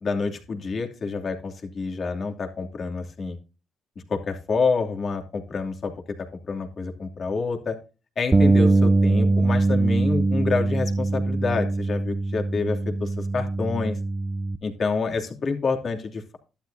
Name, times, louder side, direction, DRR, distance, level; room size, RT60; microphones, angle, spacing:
voice 1, 0.0-3.4 4.1-5.9 6.5-7.8 8.2-14.0 14.6-16.4, left 4 dB, 50° left, 2 dB, 2.7 m, -28 dB
Bass guitar, 8.3-14.6, right 2 dB, 20° right, 0.5 m, -22 dB
11.5 x 10.5 x 2.7 m, 0.32 s
cardioid pair, 90°, 0 cm